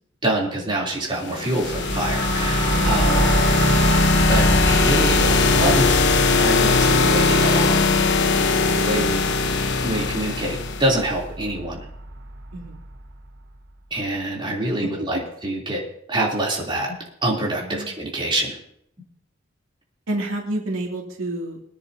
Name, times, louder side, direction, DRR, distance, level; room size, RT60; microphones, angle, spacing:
voice 1, 0.2-3.4 4.3-6.0 6.4-7.9 8.3-9.2 9.8-11.9 13.9-15.8 16.1-16.9 17.2-18.6, right 1 dB, 25° right, -3 dB, 3.4 m, -25 dB
sound 1, 1.2-11.0, left 4 dB, 60° left, 1.0 m, -20 dB
sound 2, 1.6-13.3, right 2 dB, 60° right, 1.1 m, -26 dB
voice 2, 2.7-3.2 12.5-12.8 15.0-15.1 17.6-18.0 20.1-21.6, right 1 dB, 85° right, -1 dB, 2.7 m, -29 dB
23.5 x 9.8 x 2.8 m, 0.74 s
head